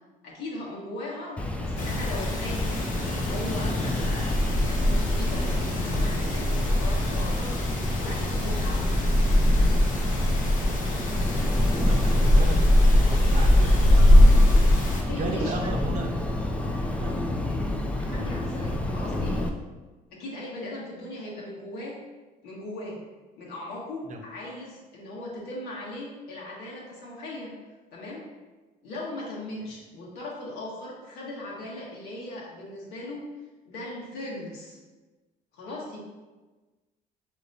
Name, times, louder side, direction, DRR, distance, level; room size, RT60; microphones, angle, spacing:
voice 1, 0.2-2.8 3.1-8.8 15.0-15.9 18.0-19.5 20.1-22.0 22.4-23.0 23.4-27.5 27.9-28.2 28.8-33.2 33.6-34.8 35.5-36.0, left 1 dB, 85° left, -5 dB, 1.5 m, -38 dB
sound 1, 1.4-19.5, left 1 dB, 5° left, 0.4 m, -22 dB
sound 2, 1.8-15.0, left 2 dB, 55° left, 0.9 m, -34 dB
voice 2, 11.7-14.2 15.2-16.1 17.0-17.2 24.1-24.2, right 2 dB, 45° right, 2 dB, 0.7 m, -35 dB
6.3 x 3.0 x 2.7 m, 1.2 s
cardioid pair, 110°, 17 cm